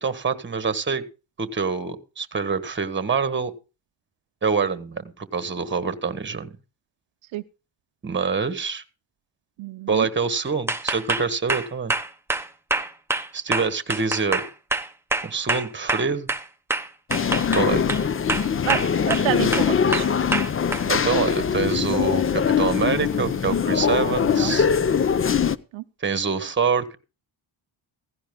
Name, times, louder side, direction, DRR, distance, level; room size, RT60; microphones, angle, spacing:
voice 1, 0.0-1.0 1.4-3.5 4.4-6.5 8.0-8.8 9.9-11.9 13.3-14.4 15.2-16.3 17.5-17.9 20.9-24.7 26.0-27.0, right 5 dB, 25° right, 1.4 m, -25 dB
voice 2, 9.6-10.1 18.6-18.8 19.1-20.1 24.3-24.6 25.7-25.8, right 14 dB, 75° right, 0.7 m, -28 dB
sound 1, 10.7-16.4 16.7-18.0 18.3-19.3 19.5-20.8, right 2 dB, 5° right, 0.8 m, -26 dB
sound 2, 17.1-25.6, left 7 dB, 30° left, 0.5 m, -22 dB
16.0 x 16.0 x 2.2 m
cardioid pair, 135°, 47 cm